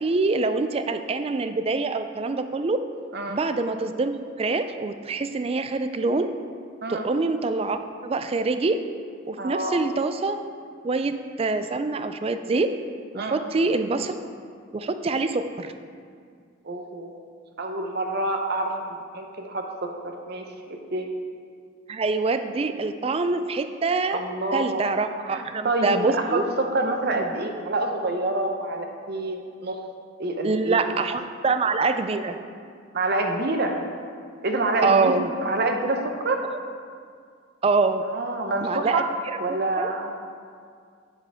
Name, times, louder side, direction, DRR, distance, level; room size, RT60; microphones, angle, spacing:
voice 1, 0.0-2.8 3.3-6.3 6.9-8.8 9.3-10.4 10.8-11.1 11.4-12.7 13.1-14.2 14.7-15.7 21.9-24.2 24.5-26.4 27.2-27.3 30.4-32.4 34.8-35.3 37.6-38.0 38.6-39.4 39.8-39.9, right 3 dB, 30° right, 9 dB, 0.3 m, -25 dB
voice 2, 9.4-9.8 13.2-13.4 16.6-17.2 17.6-19.9 20.3-20.4 20.9-21.1 24.1-24.9 25.3-29.8 30.2-30.8 32.9-33.7 34.4-35.2 35.4-36.4 38.1-39.0 39.4-40.1, right 2 dB, 55° right, 3 dB, 0.7 m, -27 dB
9.1 x 7.3 x 3.5 m, 2.2 s
head